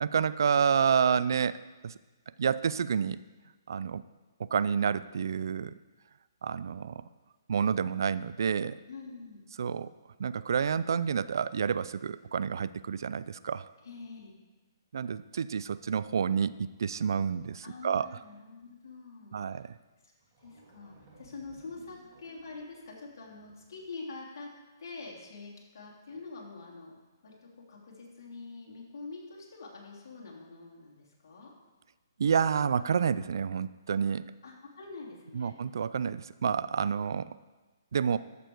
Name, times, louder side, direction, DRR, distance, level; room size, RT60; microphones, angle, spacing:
voice 1, 0.0-1.9 2.4-3.2 3.7-4.0 4.4-5.7 6.4-7.0 7.5-8.8 9.6-9.9 10.2-13.7 14.9-18.2 19.3-19.7 32.2-34.3 35.3-37.3 37.9-38.2, right 7 dB, 65° right, 16 dB, 0.4 m, -29 dB
voice 2, 8.9-9.4 13.8-14.3 17.6-19.7 20.0-20.1 20.4-24.5 24.8-31.5 33.9-34.0 34.4-35.6, left 3 dB, 60° left, -2 dB, 3.1 m, -46 dB
sound 1, 19.9-20.0 20.2-24.0, right 2 dB, 30° right, 2.5 m, -59 dB
13.5 x 6.8 x 4.6 m, 1.2 s
hypercardioid pair, 145°, 2 cm